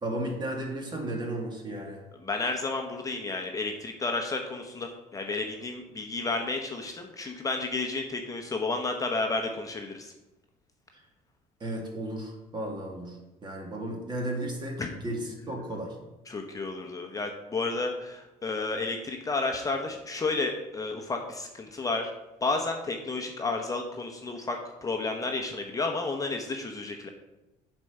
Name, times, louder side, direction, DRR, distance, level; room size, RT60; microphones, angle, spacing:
voice 1, 0.0-2.0 11.6-16.0, right 1 dB, 30° right, 0 dB, 2.3 m, -34 dB
voice 2, 2.2-10.1 14.8-14.9 16.3-22.1 22.4-27.1, left 3 dB, 25° left, 3 dB, 0.9 m, -31 dB
7.7 x 4.5 x 6.5 m, 1.0 s
cardioid pair, 100°, 14 cm